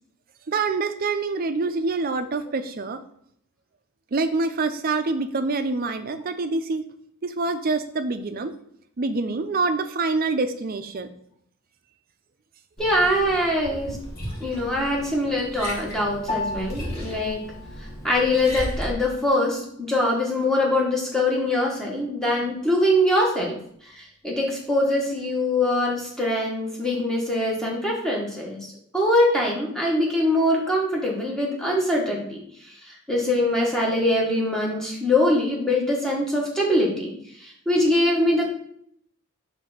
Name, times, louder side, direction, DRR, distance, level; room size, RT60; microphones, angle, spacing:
voice 1, 0.5-3.0 4.1-6.8 7.2-8.5 9.0-11.1 13.9-14.0, right 3 dB, 40° right, 8 dB, 0.5 m, -26 dB
Liquid, 12.8-18.9, equal, 45° left, 1.9 m, -36 dB
voice 2, 12.8-14.0 14.4-17.4 18.0-23.6 23.9-28.7 28.9-32.4 32.8-38.5, left 1 dB, ahead, -3 dB, 1.3 m, -23 dB
Piano, 16.3-25.9, left 3 dB, 25° left, 0.6 m, -40 dB
5.1 x 3.3 x 5.6 m, 0.67 s
head